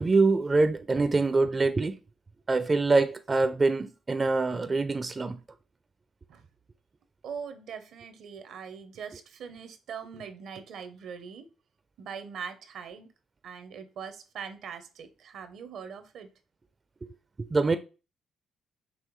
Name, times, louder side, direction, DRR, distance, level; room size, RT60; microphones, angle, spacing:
voice 1, 0.0-1.9 2.5-5.4 17.5-17.8, right 3 dB, 30° right, 0.4 m, -24 dB
voice 2, 7.2-11.5 12.0-13.1 13.4-16.3, right 6 dB, 75° right, 0.7 m, -41 dB
5.5 x 3.1 x 3.1 m
cardioid pair, 90°, 0 cm